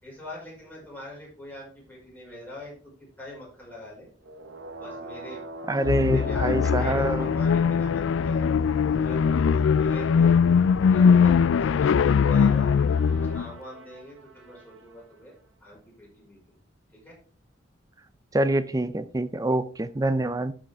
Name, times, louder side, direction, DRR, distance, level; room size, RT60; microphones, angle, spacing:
voice 1, 0.0-2.9 3.2-4.1 4.8-5.4 6.1-8.5 9.0-10.5 10.9-12.7 13.2-15.3 15.6-16.5 16.9-17.1, left 1 dB, 10° left, 5.3 m, -43 dB
sound 1, 4.2-8.8 12.2-15.0, right 2 dB, 85° right, 1.2 m, -43 dB
voice 2, 5.7-7.3 18.3-20.5, right 1 dB, 20° right, 0.5 m, -25 dB
sound 2, 5.8-13.5, left 6 dB, 85° left, 0.3 m, -21 dB
13.5 x 5.2 x 3.5 m
head